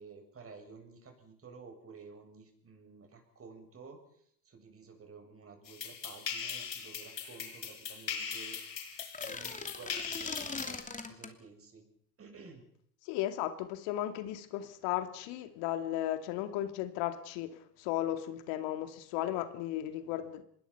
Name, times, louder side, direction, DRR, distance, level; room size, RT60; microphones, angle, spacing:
voice 1, 0.0-8.9 9.2-11.9 12.2-12.6, right 5 dB, 25° right, 4 dB, 7.6 m, -52 dB
sound 1, 5.7-10.8, left 7 dB, 90° left, 5.5 m, -40 dB
sound 2, 9.0-11.4, left 4 dB, 15° left, 3.0 m, -41 dB
voice 2, 13.0-20.4, left 13 dB, 60° left, 9 dB, 2.4 m, -35 dB
25.5 x 21.5 x 5.8 m, 0.66 s
hypercardioid pair, 90°, 49 cm